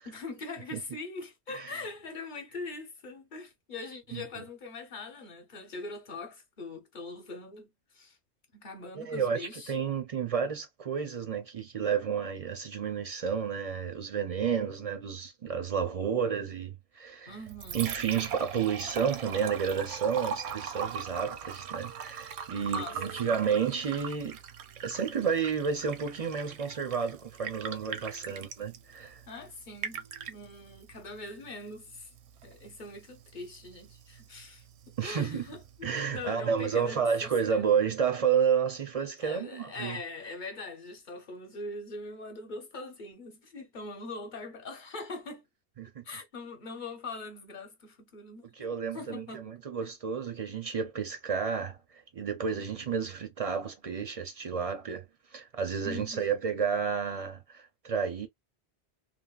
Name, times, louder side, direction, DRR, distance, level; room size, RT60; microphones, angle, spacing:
voice 1, 0.0-8.2 8.5-9.7 17.3-17.9 22.6-23.4 29.3-32.1 32.4-37.6 39.2-45.4 46.0-49.5 49.8-49.9 55.8-56.5, left 3 dB, 50° left, 1.0 m, -42 dB
voice 2, 4.1-4.4 8.9-17.4 17.7-24.4 24.8-29.2 35.0-35.5 35.8-40.0 45.8-46.0 48.5-55.1 55.3-58.3, right 7 dB, 50° right, 0.4 m, -31 dB
Liquid, 17.3-36.3, right 7 dB, 80° right, 0.8 m, -41 dB
3.3 x 2.0 x 2.3 m
omnidirectional pair, 1.1 m